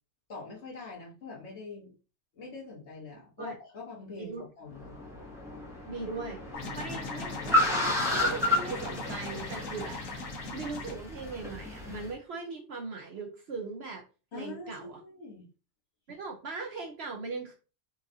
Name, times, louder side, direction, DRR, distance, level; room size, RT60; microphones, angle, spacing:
voice 1, 0.3-1.9 2.3-4.9 14.3-15.4, left 3 dB, 50° left, -4 dB, 1.7 m, -44 dB
Car, 4.7-12.1, left 1 dB, 5° right, 0.7 m, -32 dB
voice 2, 5.9-6.4 6.7-14.0 14.3-15.0 16.1-17.5, right 4 dB, 55° right, 2 dB, 0.8 m, -39 dB
sound 1, 6.5-10.9, left 3 dB, 70° left, 1.3 m, -39 dB
4.7 x 2.5 x 2.7 m, 0.33 s
omnidirectional pair, 1.5 m